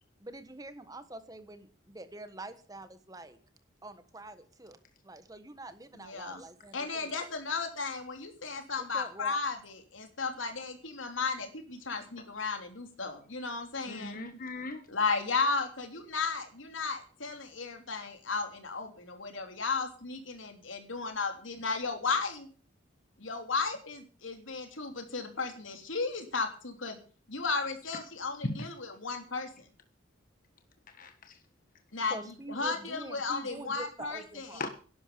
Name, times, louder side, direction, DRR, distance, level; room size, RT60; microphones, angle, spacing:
voice 1, 0.2-3.4 3.8-4.8 5.0-7.2 8.8-9.4 32.0-34.6, right 2 dB, 20° right, 10 dB, 1.4 m, -46 dB
voice 2, 5.9-6.4 6.7-14.2 14.9-22.5 23.2-27.0 27.3-29.6 31.9-34.7, left 4 dB, 85° left, 6 dB, 3.1 m, -34 dB
voice 3, 13.9-14.8 27.9-28.0 28.4-28.7 30.9-31.4 34.5-34.7, left 2 dB, 45° left, 8 dB, 1.3 m, -38 dB
11.5 x 11.0 x 6.9 m, 0.40 s
head